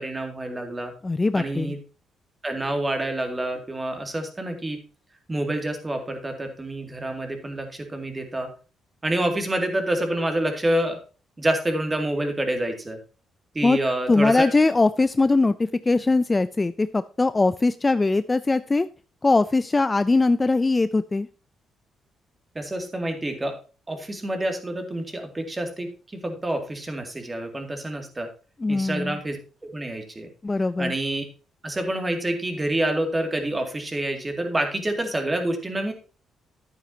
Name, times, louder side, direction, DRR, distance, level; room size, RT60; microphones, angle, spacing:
voice 1, 0.0-0.9 1.3-1.8 2.4-4.8 5.3-8.5 9.0-11.0 11.4-13.0 13.5-14.5 22.5-23.6 23.9-28.3 28.7-29.4 29.6-30.3 30.8-31.2 31.6-35.9, right 1 dB, 20° right, 5 dB, 2.3 m, -27 dB
voice 2, 1.0-1.8 13.6-13.8 14.1-18.9 19.2-21.3 28.6-29.2 30.4-30.9, left 3 dB, 20° left, 13 dB, 0.4 m, -21 dB
11.0 x 9.2 x 2.8 m, 0.35 s
cardioid pair, 90°, 0 cm